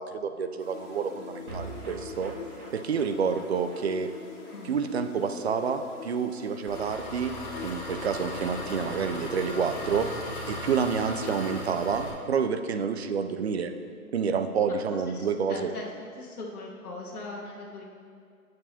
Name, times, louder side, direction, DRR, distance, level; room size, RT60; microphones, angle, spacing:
voice 1, 0.0-2.3 2.7-4.1 4.6-7.3 7.6-10.1 10.5-13.7 14.1-15.7, right 6 dB, 50° right, 8 dB, 0.5 m, -28 dB
sound 1, 0.6-12.5, left 7 dB, 55° left, 1.4 m, -46 dB
sound 2, 1.5-7.9 8.2-8.3 8.5-8.6, right 2 dB, 80° right, 1.9 m, -46 dB
Engine, 6.7-12.1, left 1 dB, 30° left, 1.3 m, -37 dB
voice 2, 14.6-15.9 16.2-17.8, left 2 dB, 80° left, -4 dB, 1.6 m, -40 dB
8.7 x 7.5 x 2.9 m, 2.2 s
hypercardioid pair, 150°, 44 cm